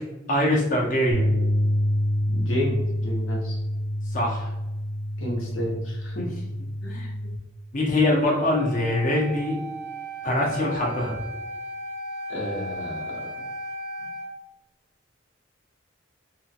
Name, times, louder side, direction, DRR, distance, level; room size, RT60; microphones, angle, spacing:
voice 1, 0.3-1.3 4.1-4.5 6.2-6.3 6.8-7.1 7.7-9.6 10.2-11.2, left 1 dB, 40° left, -3 dB, 0.6 m, -23 dB
sound 1, 1.1-7.4, equal, 60° right, 0.4 m, -27 dB
voice 2, 2.3-3.6 5.2-6.3 12.3-13.2, equal, 90° left, -2 dB, 0.8 m, -31 dB
Wind instrument woodwind instrument, 8.4-14.3, equal, 15° left, 0.9 m, -36 dB
2.9 x 2.2 x 2.8 m, 0.98 s
head